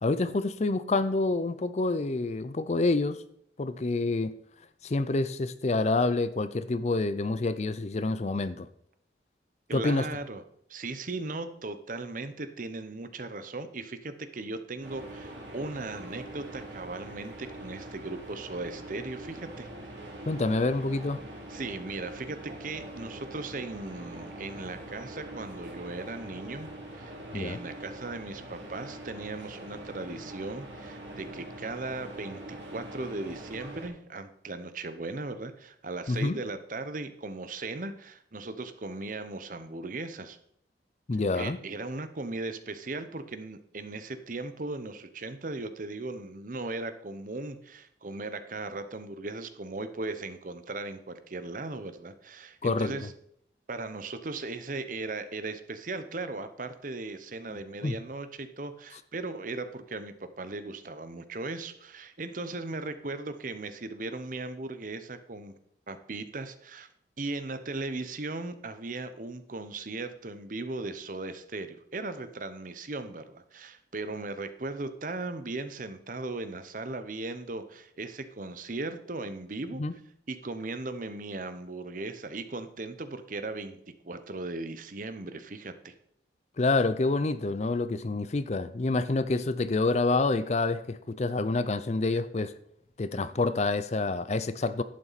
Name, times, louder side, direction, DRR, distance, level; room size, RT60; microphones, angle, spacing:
voice 1, 0.0-3.2 3.6-4.3 4.8-8.7 9.7-10.1 20.3-21.2 27.3-27.6 36.1-36.4 41.1-41.6 52.6-53.0 57.5-58.0 79.8-79.9 86.6-92.5 93.0-94.8, left 3 dB, 40° left, 0.5 m, -27 dB
voice 2, 9.7-10.4 10.7-19.7 21.5-40.4 41.3-53.1 53.7-65.5 65.9-66.9 67.2-79.8 80.3-85.9, right 3 dB, 45° right, 0.8 m, -37 dB
sound 1, 14.8-33.9, right 1 dB, 80° right, 2.7 m, -43 dB
11.0 x 8.8 x 4.1 m
head